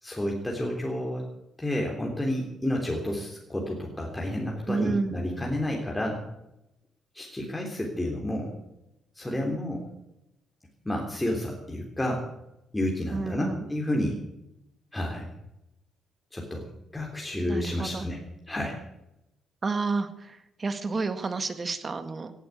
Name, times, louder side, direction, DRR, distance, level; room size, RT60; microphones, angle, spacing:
voice 1, 0.0-1.2 1.6-6.2 7.1-8.5 9.2-9.8 10.9-12.3 12.7-14.2 14.9-15.4 16.3-16.7 16.9-18.2 18.5-18.8, left 1 dB, 10° left, -1 dB, 3.5 m, -30 dB
voice 2, 4.7-5.2 13.1-13.7 17.3-18.1 19.6-22.3, right 4 dB, 35° right, 10 dB, 1.8 m, -30 dB
17.5 x 9.3 x 8.5 m, 0.87 s
cardioid pair, 90°, 0 cm